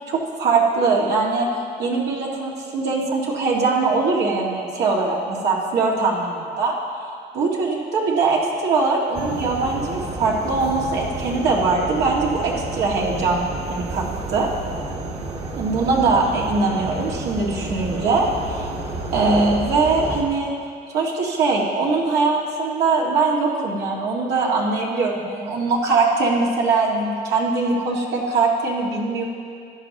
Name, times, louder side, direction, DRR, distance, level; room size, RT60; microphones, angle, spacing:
voice 1, 0.1-1.5 1.8-6.8 7.3-13.4 13.7-14.5 15.5-18.7 19.1-20.5 20.9-29.2, right 3 dB, 75° right, -3 dB, 2.0 m, -21 dB
sound 1, 9.1-20.2, right 2 dB, 35° right, 1.4 m, -31 dB
15.0 x 10.5 x 3.0 m, 2.3 s
cardioid pair, 110°, 17 cm